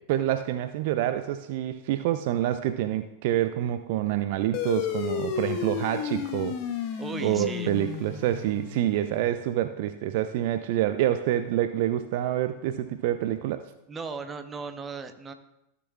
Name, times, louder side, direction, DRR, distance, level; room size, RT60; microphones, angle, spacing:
voice 1, 0.0-6.6 7.2-13.6, right 12 dB, 55° right, 0.4 m, -27 dB
sound 1, 4.5-9.4, left 8 dB, 45° left, 0.8 m, -33 dB
voice 2, 7.0-7.7 13.9-15.3, right 4 dB, 20° right, 0.8 m, -36 dB
14.5 x 6.8 x 2.3 m
figure-of-eight pair, 90°, 0 cm